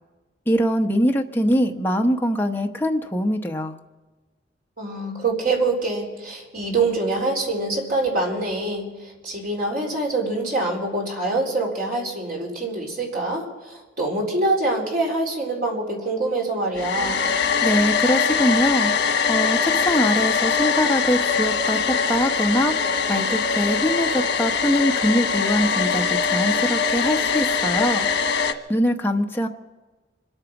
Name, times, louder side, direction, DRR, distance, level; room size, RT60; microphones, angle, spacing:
voice 1, 0.5-3.8 17.6-28.1 28.7-29.5, equal, 10° left, 2 dB, 1.0 m, -23 dB
voice 2, 4.8-17.2, right 2 dB, 55° right, -1 dB, 4.1 m, -25 dB
Domestic sounds home sounds, 16.7-28.5, left 6 dB, 90° left, 1.2 m, -22 dB
25.5 x 9.0 x 6.0 m, 1.2 s
head